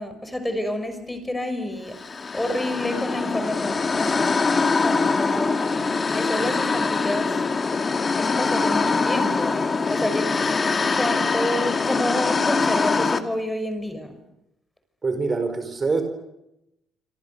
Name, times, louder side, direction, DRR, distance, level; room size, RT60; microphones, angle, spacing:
voice 1, 0.0-1.9 2.3-7.4 8.1-10.4 10.9-14.2, left 1 dB, 10° left, 9 dB, 5.8 m, -29 dB
sound 1, 1.9-13.2, left 4 dB, 35° left, 2.0 m, -23 dB
voice 2, 15.0-16.0, right 4 dB, 30° right, 8 dB, 4.4 m, -24 dB
28.0 x 26.5 x 6.9 m, 0.87 s
cardioid pair, 95°, 0 cm